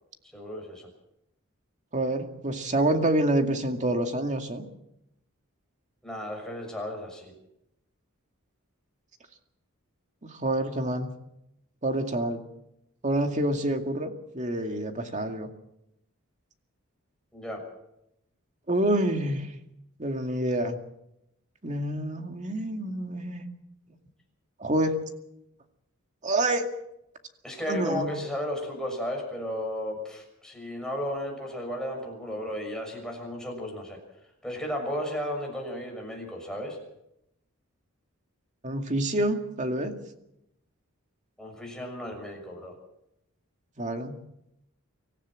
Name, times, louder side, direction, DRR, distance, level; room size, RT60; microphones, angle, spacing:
voice 1, 0.3-0.9 6.0-7.3 17.3-17.6 27.4-34.0 34.4-36.8 41.4-42.8, equal, 5° left, 1 dB, 6.4 m, -34 dB
voice 2, 1.9-4.6 10.2-11.1 11.8-12.4 13.0-15.5 18.7-19.5 20.0-20.8 21.6-23.4 24.6-25.0 26.2-26.7 27.7-28.1 38.6-39.9 43.8-44.2, right 1 dB, 35° right, 5 dB, 2.2 m, -27 dB
25.0 x 15.0 x 7.6 m, 0.83 s
head